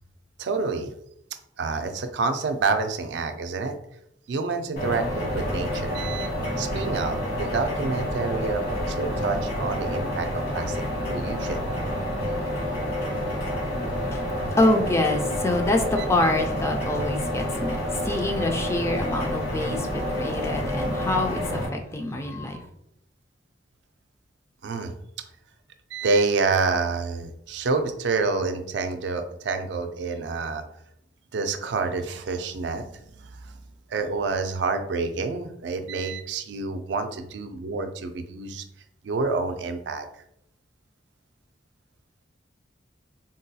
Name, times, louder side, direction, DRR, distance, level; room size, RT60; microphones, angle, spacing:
voice 1, 0.4-0.9 1.6-3.8 4.3-6.3 6.6-10.8 11.1-11.6 24.6-24.9 25.9-30.6 31.3-33.6 33.9-38.6 39.0-40.1, right 4 dB, 70° right, 7 dB, 0.4 m, -28 dB
sound 1, 4.8-21.7, equal, 60° left, 1.2 m, -28 dB
voice 2, 14.1-22.7, left 2 dB, 15° left, 4 dB, 0.3 m, -26 dB
3.7 x 2.2 x 2.7 m, 0.77 s
head